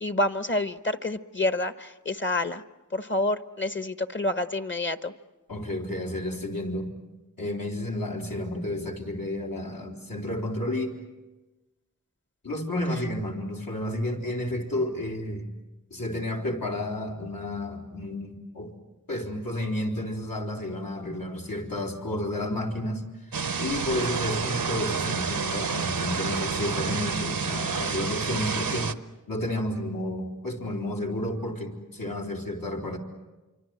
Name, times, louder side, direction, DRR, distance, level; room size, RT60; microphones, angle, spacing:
voice 1, 0.0-2.6 2.9-5.1, left 2 dB, 35° left, 11 dB, 1.0 m, -28 dB
voice 2, 5.5-6.9 7.4-11.0 12.4-15.5 15.9-18.7 19.1-23.0 23.3-28.9 29.3-33.0, left 1 dB, 80° left, -1 dB, 3.9 m, -31 dB
sound 1, 23.3-28.9, right 5 dB, 90° right, 0.9 m, -29 dB
27.0 x 24.5 x 7.7 m, 1.1 s
wide cardioid pair, 45°, 33 cm